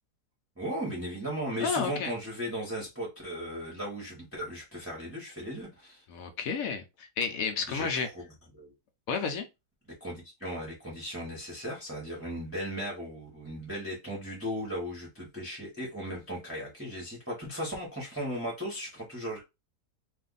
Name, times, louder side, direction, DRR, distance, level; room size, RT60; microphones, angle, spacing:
voice 1, 0.6-6.0 7.7-8.1 8.5-8.7 10.0-19.4, equal, 10° right, 0.8 m, -36 dB
voice 2, 1.6-2.1 6.1-8.1 9.1-9.5, left 5 dB, 65° left, 0.9 m, -31 dB
2.6 x 2.5 x 3.8 m
omnidirectional pair, 1.8 m